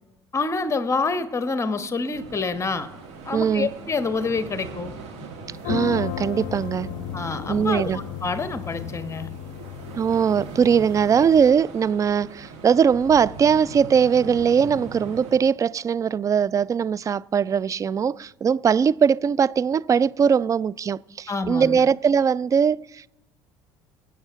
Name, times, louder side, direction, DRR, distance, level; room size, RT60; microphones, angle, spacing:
voice 1, 0.3-2.9 3.2-4.9 7.1-9.3 21.3-21.8, left 4 dB, 20° left, 1.2 m, -27 dB
sound 1, 2.1-15.3, right 3 dB, 55° right, 2.7 m, -40 dB
voice 2, 3.3-3.7 5.7-6.9 7.5-8.0 10.0-23.1, right 7 dB, 25° right, 0.3 m, -20 dB
sound 2, 5.6-11.5, left 14 dB, 60° left, 0.5 m, -34 dB
23.0 x 8.3 x 3.6 m
figure-of-eight pair, 60°, 14 cm